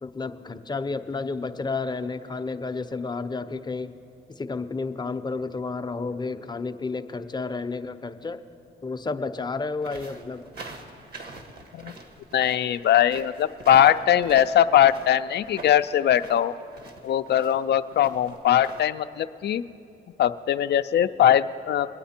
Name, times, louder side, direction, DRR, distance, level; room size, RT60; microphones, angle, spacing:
voice 1, 0.0-3.9 4.3-8.4 8.8-10.4, left 4 dB, 20° left, 9 dB, 0.7 m, -31 dB
sound 1, 9.8-18.8, right 2 dB, 55° right, 1.7 m, -43 dB
voice 2, 12.3-16.5 17.0-19.6 20.2-21.9, left 10 dB, 60° left, 11 dB, 0.4 m, -21 dB
23.5 x 9.1 x 4.4 m, 2.7 s
cardioid pair, 90°, 20 cm